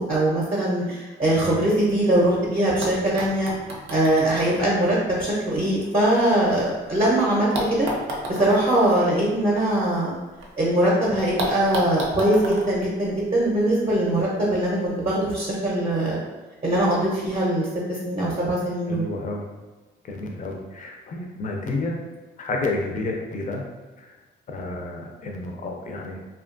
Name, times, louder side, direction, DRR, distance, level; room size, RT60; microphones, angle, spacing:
voice 1, 0.0-3.5 3.9-7.9 8.3-10.1 10.6-16.2 16.6-19.0, right 1 dB, 30° right, -6 dB, 0.7 m, -22 dB
sound 1, 2.8-6.9 7.5-10.5 10.8-10.9 11.4-13.8 14.8-14.9, right 1 dB, 85° right, 0.6 m, -34 dB
voice 2, 18.9-19.4 20.0-22.0 22.4-23.6 24.0-24.1 24.5-26.2, left 2 dB, 40° left, 1 dB, 0.5 m, -30 dB
2.7 x 2.3 x 2.5 m, 1.2 s
cardioid pair, 90°, 20 cm